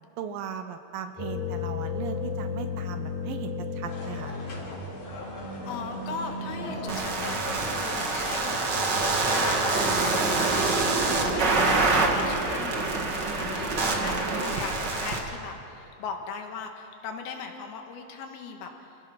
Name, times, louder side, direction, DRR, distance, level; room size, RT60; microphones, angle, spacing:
voice 1, 0.2-4.3 11.9-12.0 14.0-14.6, right 8 dB, 75° right, 8 dB, 2.4 m, -37 dB
sound 1, 1.2-7.8, left 4 dB, 55° left, 6.0 m, -35 dB
sound 2, 3.8-14.9, left 2 dB, 35° left, 3.8 m, -41 dB
voice 2, 5.7-8.7 9.2-13.1 13.4-18.7, left 5 dB, 80° left, 4 dB, 3.4 m, -39 dB
sound 3, 6.9-15.2, right 3 dB, 40° right, 1.6 m, -26 dB
28.0 x 17.5 x 5.8 m, 2.7 s
omnidirectional pair, 4.5 m